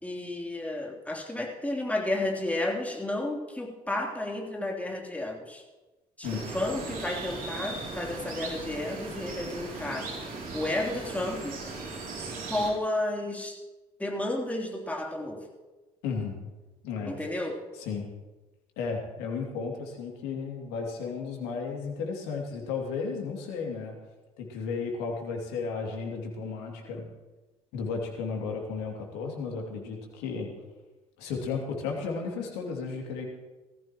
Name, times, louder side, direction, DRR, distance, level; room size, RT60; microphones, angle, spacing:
voice 1, 0.0-5.6 6.2-10.1 10.5-11.5 12.5-13.6 14.0-15.4 17.0-17.6, left 1 dB, 10° left, -1 dB, 3.4 m, -32 dB
sound 1, 6.2-12.7, right 3 dB, 55° right, 3.1 m, -38 dB
voice 2, 16.0-16.4 16.8-17.3 17.7-18.1 18.8-23.9 24.4-27.1 27.7-30.5 31.2-33.3, left 5 dB, 70° left, 1 dB, 2.7 m, -34 dB
18.5 x 14.5 x 3.1 m, 1.2 s
hypercardioid pair, 55°, 17 cm